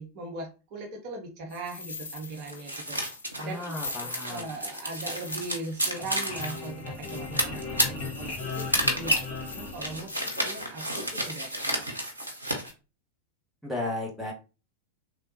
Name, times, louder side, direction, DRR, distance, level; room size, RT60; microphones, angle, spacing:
voice 1, 0.0-3.0 3.4-11.9, right 2 dB, 40° right, 1 dB, 0.7 m, -40 dB
sound 1, 1.5-10.6, left 4 dB, 70° left, 0.4 m, -44 dB
sound 2, 2.3-12.7, right 1 dB, 85° right, 0.6 m, -31 dB
voice 2, 3.4-4.4 13.6-14.3, left 2 dB, ahead, -3 dB, 1.0 m, -34 dB
sound 3, 5.8-10.5, left 3 dB, 50° left, 1.3 m, -37 dB
3.2 x 2.1 x 2.7 m, 0.31 s
figure-of-eight pair, 90°, 0 cm